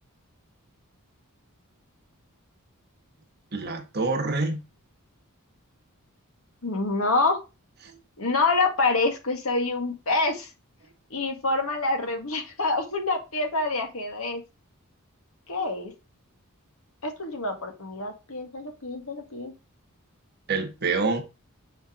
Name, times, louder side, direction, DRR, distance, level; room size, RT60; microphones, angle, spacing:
voice 1, 3.5-4.6 7.8-7.9 20.5-21.2, right 3 dB, 45° right, 1.5 m, -26 dB
voice 2, 6.6-7.4 8.2-10.5 11.1-14.4 15.5-15.9 17.0-19.5, left 3 dB, 70° left, 1.9 m, -26 dB
7.4 x 4.3 x 5.0 m
head